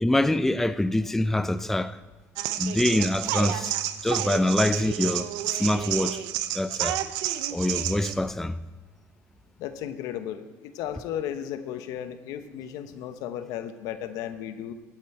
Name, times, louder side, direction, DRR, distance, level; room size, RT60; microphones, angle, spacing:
voice 1, 0.0-2.0 2.6-3.7 4.0-6.2 6.5-7.0 7.5-8.6, left 1 dB, 5° left, 0.4 m, -25 dB
sound 1, 2.4-8.1, right 13 dB, 90° right, 0.6 m, -30 dB
voice 2, 9.6-14.7, left 10 dB, 80° left, 0.9 m, -35 dB
15.5 x 9.3 x 4.4 m
cardioid pair, 105°, 6 cm